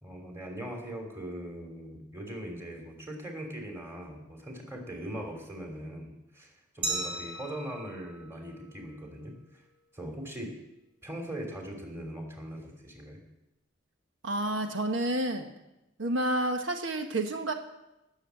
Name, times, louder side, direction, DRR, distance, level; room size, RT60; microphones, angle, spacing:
voice 1, 0.0-9.6 9.9-10.5 11.0-13.2, right 1 dB, 15° right, 2 dB, 3.0 m, -40 dB
Glass, 6.8-9.5, right 2 dB, 30° right, 2.8 m, -38 dB
voice 2, 14.2-15.5 16.0-17.5, right 1 dB, 80° right, 6 dB, 1.2 m, -29 dB
18.0 x 7.2 x 8.2 m, 0.94 s
head